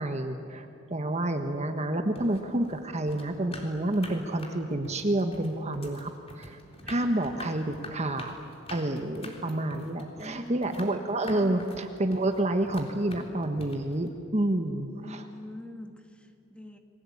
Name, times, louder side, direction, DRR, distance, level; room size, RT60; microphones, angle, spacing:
voice 1, 0.0-6.1 6.4-6.6 6.8-8.3 8.7-15.3, right 1 dB, 35° right, 6 dB, 1.4 m, -29 dB
sound 1, 2.1-14.1, left 2 dB, 30° left, 3.6 m, -46 dB
voice 2, 6.8-7.5 10.1-10.9 11.3-11.5 14.9-16.8, left 1 dB, 5° left, 4 dB, 2.0 m, -44 dB
29.5 x 21.5 x 8.7 m, 2.5 s
head